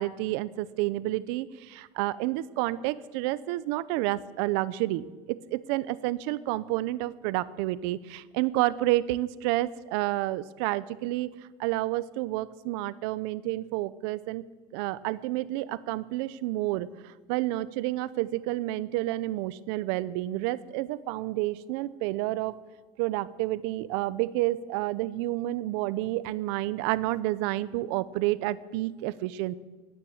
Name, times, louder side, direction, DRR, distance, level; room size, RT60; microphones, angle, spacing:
voice 1, 0.0-11.3 11.6-14.4 14.7-22.5 23.0-29.6, right 16 dB, 75° right, 18 dB, 0.7 m, -30 dB
16.5 x 9.8 x 7.3 m, 1.3 s
cardioid pair, 150°, 13 cm